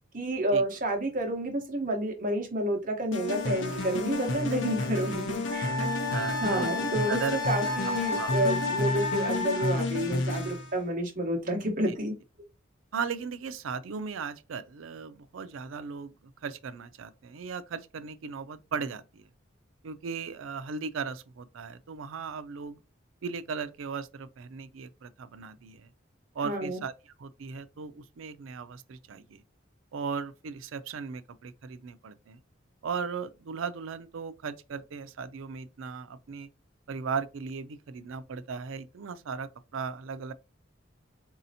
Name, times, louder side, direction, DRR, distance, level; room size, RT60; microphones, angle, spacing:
voice 1, 0.1-5.7 6.4-12.1 26.4-26.8, right 1 dB, 45° right, 0.9 m, -30 dB
sound 1, 3.1-10.8, left 2 dB, 70° left, 0.6 m, -31 dB
Wind instrument woodwind instrument, 5.5-9.8, left 3 dB, 45° left, 1.0 m, -32 dB
voice 2, 5.8-7.8 8.1-8.4 11.9-12.0 12.9-19.3 19.8-22.8 23.2-25.9 26.3-29.4 29.9-32.4 32.8-36.5 36.9-40.3, right 5 dB, 85° right, 0.4 m, -37 dB
4.1 x 2.7 x 2.7 m
head